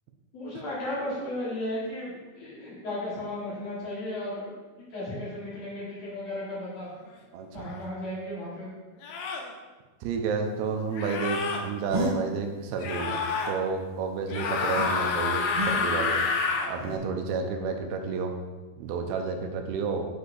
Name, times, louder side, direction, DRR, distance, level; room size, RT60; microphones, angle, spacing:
voice 1, 0.3-4.5 4.9-6.9 7.5-8.7, left 1 dB, 55° left, -8 dB, 2.3 m, -35 dB
voice 2, 7.3-7.7 10.0-16.2 16.7-18.4 18.8-20.0, right 5 dB, 85° right, 4 dB, 2.4 m, -31 dB
sound 1, 7.6-7.8 9.0-9.5 10.9-11.6 12.8-13.5 14.3-16.7, left 5 dB, 80° left, 2.4 m, -28 dB
sound 2, 11.9-12.1 14.7-14.9 15.5-16.0 16.7-17.0, right 1 dB, 20° right, 1.0 m, -31 dB
7.8 x 5.2 x 2.6 m, 1.3 s
omnidirectional pair, 4.4 m